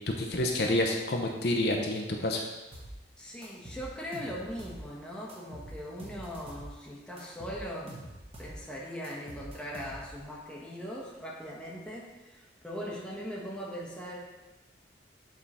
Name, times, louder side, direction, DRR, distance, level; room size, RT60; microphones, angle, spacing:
voice 1, 0.2-2.4, left 1 dB, 60° left, 1 dB, 0.7 m, -28 dB
sound 1, 2.7-3.0 3.4-4.8 5.3-6.7 7.2-8.6 9.0-10.3, right 1 dB, 30° right, 1.2 m, -45 dB
voice 2, 3.2-8.0 8.4-14.2, equal, 5° left, -5 dB, 1.0 m, -40 dB
7.6 x 3.7 x 4.2 m, 1.1 s
head